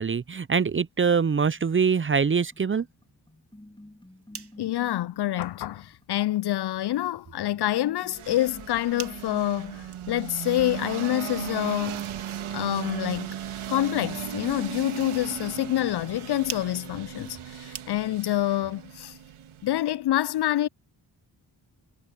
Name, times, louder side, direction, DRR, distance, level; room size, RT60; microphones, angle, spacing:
voice 1, 0.0-2.9, right 6 dB, 25° right, 0.5 m, -24 dB
sound 1, 1.5-10.0, left 1 dB, 10° left, 3.6 m, -52 dB
sound 2, 3.9-18.4, right 6 dB, 55° right, 1.9 m, -48 dB
voice 2, 4.6-12.0 12.5-13.4 13.7-19.2 19.6-20.7, left 14 dB, 55° left, 0.5 m, -27 dB
sound 3, 8.1-19.8, right 10 dB, 80° right, 2.2 m, -37 dB
supercardioid pair, 45°, 49 cm